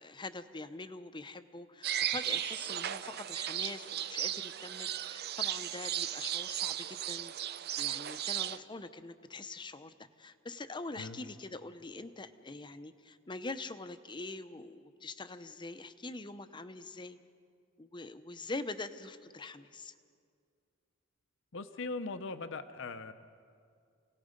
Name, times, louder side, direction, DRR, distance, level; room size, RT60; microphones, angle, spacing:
voice 1, 0.0-17.2 17.8-19.9, left 3 dB, 25° left, 11 dB, 0.7 m, -44 dB
sound 1, 1.8-8.6, right 11 dB, 50° right, 0.5 m, -36 dB
voice 2, 21.5-23.1, left 3 dB, 65° left, 10 dB, 0.8 m, -40 dB
28.5 x 18.0 x 5.2 m, 2.2 s
head